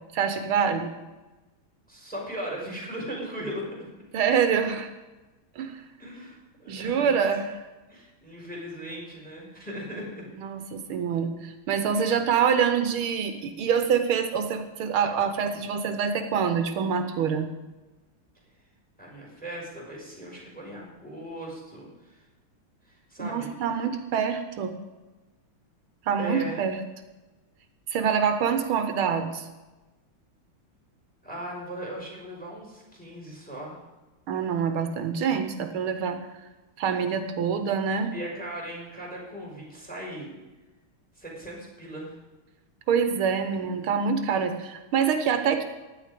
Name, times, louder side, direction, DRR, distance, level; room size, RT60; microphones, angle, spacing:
voice 1, 0.1-0.9 4.1-4.9 5.6-5.8 6.7-7.5 10.4-17.5 23.2-24.7 26.1-26.8 27.9-29.5 34.3-36.2 36.8-38.1 42.9-45.6, right 7 dB, 85° right, 8 dB, 1.9 m, -25 dB
voice 2, 1.9-3.9 6.0-7.1 7.9-10.3 11.9-12.1 19.0-22.2 22.8-23.5 26.2-26.6 31.2-33.8 38.1-40.3 41.2-42.2, right 1 dB, 5° left, -2 dB, 5.7 m, -38 dB
16.0 x 11.5 x 5.1 m, 1.1 s
omnidirectional pair, 2.3 m